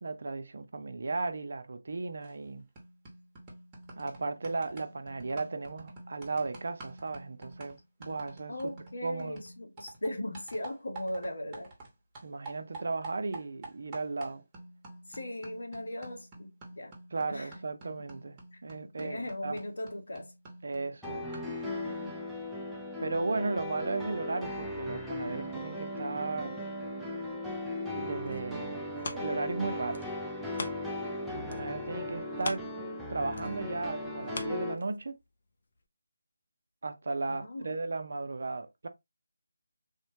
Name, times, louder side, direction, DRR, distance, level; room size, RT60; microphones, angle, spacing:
voice 1, 0.0-2.7 4.0-8.7 9.0-9.4 12.2-14.4 17.1-19.6 20.6-21.3 23.0-26.6 27.9-30.0 31.3-32.6 33.1-35.2 36.8-38.9, right 3 dB, 60° right, 0.5 m, -35 dB
sound 1, 2.2-2.5 2.8-11.9 12.2-21.6, right 2 dB, 20° right, 0.9 m, -49 dB
voice 2, 8.5-11.7 15.1-16.9 17.3-17.6 18.5-18.6 19.0-20.3 21.5-22.2 37.3-37.8, left 1 dB, 75° left, 0.9 m, -39 dB
sound 2, 21.0-34.7, left 1 dB, ahead, 0.5 m, -37 dB
sound 3, 28.0-31.2 31.5-35.3 35.8-35.9, left 3 dB, 55° left, 0.6 m, -43 dB
3.4 x 2.1 x 2.8 m
figure-of-eight pair, 160°, 0 cm